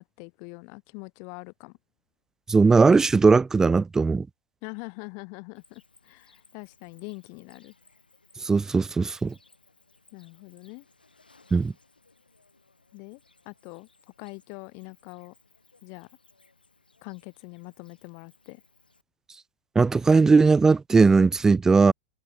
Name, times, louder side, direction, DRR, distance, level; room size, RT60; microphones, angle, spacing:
voice 1, 0.0-1.7 4.6-7.7 10.1-10.9 12.9-13.2 13.5-13.9 14.2-15.3 15.8-16.1 17.0-18.6, left 40 dB or more, 45° left, 2.2 m, -43 dB
voice 2, 2.5-4.3 8.4-9.3 11.5-11.7 19.8-21.9, right 4 dB, 10° right, 0.3 m, -19 dB
Cricket, 5.5-19.0, left 3 dB, 80° left, 5.6 m, -61 dB
figure-of-eight pair, 90°, 5 cm